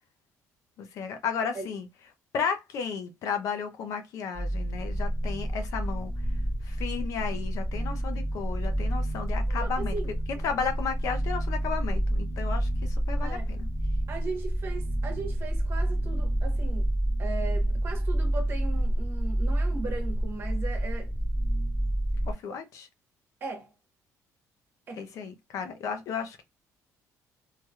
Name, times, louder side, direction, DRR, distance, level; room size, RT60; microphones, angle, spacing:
voice 1, 0.8-1.9 2.3-6.1 6.6-10.0 10.3-13.7 22.2-22.9 24.9-26.4, left 6 dB, 60° left, 0.6 m, -33 dB
sound 1, 4.3-22.3, right 1 dB, 5° left, 1.4 m, -29 dB
voice 2, 9.5-10.1 13.2-13.5 14.1-16.9 17.2-21.1 23.4-23.7 24.9-25.0, right 3 dB, 40° right, 1.2 m, -38 dB
3.2 x 2.8 x 2.3 m
cardioid pair, 160°, 6 cm